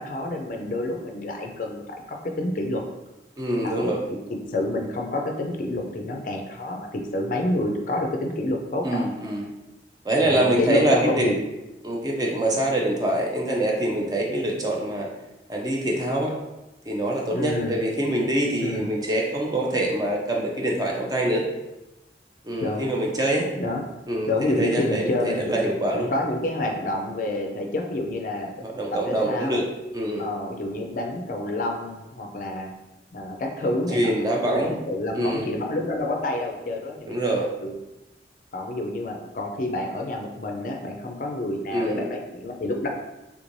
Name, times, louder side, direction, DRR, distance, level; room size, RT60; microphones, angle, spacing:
voice 1, 0.0-2.8 3.6-4.0 4.3-9.1 10.2-11.3 17.3-17.8 18.6-18.9 22.6-22.9 23.5-23.8 24.3-25.5 25.9-28.5 29.1-29.6 30.2-32.7 33.1-34.1 34.3-37.8 38.5-42.9, left 1 dB, 45° left, 2 dB, 0.4 m, -28 dB
voice 2, 3.4-4.0 8.8-9.5 10.0-11.3 11.8-15.1 15.5-16.3 16.9-21.4 22.4-23.5 24.1-24.3 24.6-26.1 28.6-29.7 29.9-30.2 33.9-34.8 35.1-35.6 37.1-37.4 41.7-42.0, right 1 dB, 20° right, -1 dB, 0.4 m, -24 dB
3.4 x 3.1 x 2.6 m, 0.99 s
head